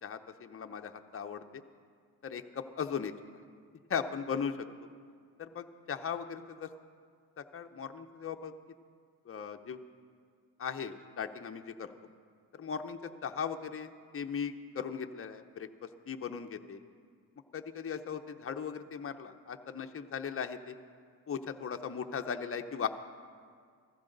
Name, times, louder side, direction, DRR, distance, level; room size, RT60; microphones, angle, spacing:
voice 1, 0.0-1.4 2.2-3.1 3.9-4.7 5.4-6.7 7.4-8.5 9.3-9.8 10.6-11.9 12.6-13.9 14.1-15.7 16.1-16.8 17.5-20.7 21.3-22.9, left 7 dB, 35° left, 6 dB, 0.7 m, -38 dB
15.0 x 15.0 x 3.9 m, 2.1 s
cardioid pair, 80°, 39 cm